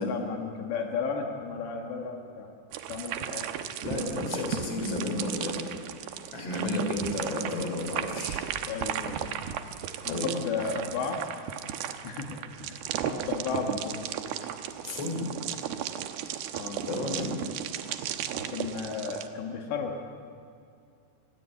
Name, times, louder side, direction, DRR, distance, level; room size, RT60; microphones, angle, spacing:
voice 1, 0.0-2.5 2.9-3.5 8.7-9.3 10.0-11.2 12.0-12.3 12.6-14.1 16.5-16.8 18.4-20.0, left 5 dB, 80° left, 2 dB, 4.1 m, -34 dB
sound 1, 2.7-19.3, right 10 dB, 70° right, 2.8 m, -35 dB
voice 2, 3.8-5.6 6.3-8.4 10.1-10.3 13.6-13.7 14.8-15.3 16.9-17.4, left 2 dB, 35° left, 2 dB, 5.3 m, -32 dB
28.5 x 20.5 x 8.4 m, 2.4 s
omnidirectional pair, 5.0 m